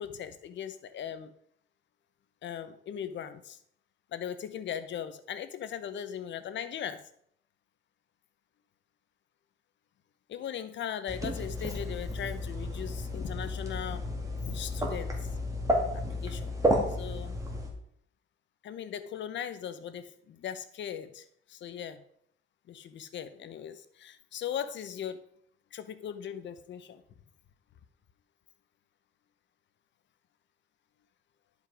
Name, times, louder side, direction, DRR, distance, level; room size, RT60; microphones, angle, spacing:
voice 1, 0.0-1.3 2.4-3.6 4.1-7.0 10.3-14.1 14.4-15.3 15.9-16.5 16.9-17.4 18.6-22.0 22.7-25.3 25.7-27.0, left 9 dB, 65° left, 12 dB, 0.9 m, -39 dB
sound 1, 11.1-17.7, equal, 15° right, 2.4 m, -32 dB
11.0 x 5.4 x 4.9 m, 0.67 s
cardioid pair, 90°, 20 cm